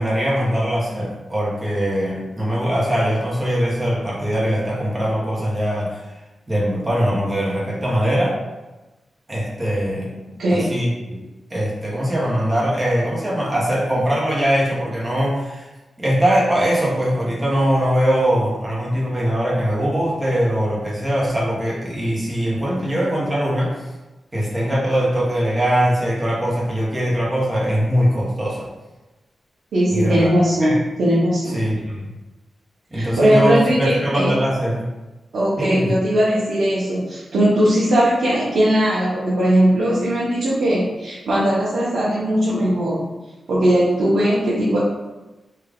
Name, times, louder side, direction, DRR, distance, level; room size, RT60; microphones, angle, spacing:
voice 1, 0.0-6.0 6.5-8.4 9.3-10.1 10.5-11.2 11.5-15.7 16.0-23.7 24.3-28.7 29.9-30.3 30.6-30.8 31.5-32.1 32.9-34.9 35.6-35.9, equal, 15° right, -6 dB, 0.8 m, -21 dB
voice 2, 29.7-31.6 32.9-34.3 35.3-43.0 43.5-44.8, equal, 90° right, -8 dB, 0.8 m, -19 dB
3.4 x 2.3 x 3.5 m, 1.1 s
wide cardioid pair, 170°, 0 cm